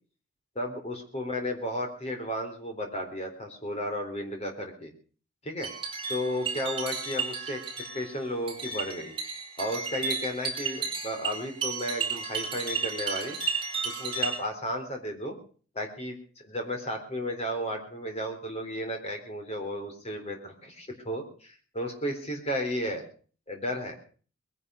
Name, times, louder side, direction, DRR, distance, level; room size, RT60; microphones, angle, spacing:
voice 1, 0.6-4.9 5.4-5.7 6.1-7.6 7.9-9.1 9.6-13.4 13.8-15.4 15.8-23.0 23.5-24.0, equal, 30° left, 4 dB, 3.7 m, -33 dB
sound 1, 5.6-14.4, right 5 dB, 25° right, 5.2 m, -33 dB
21.0 x 10.5 x 6.3 m, 0.42 s
head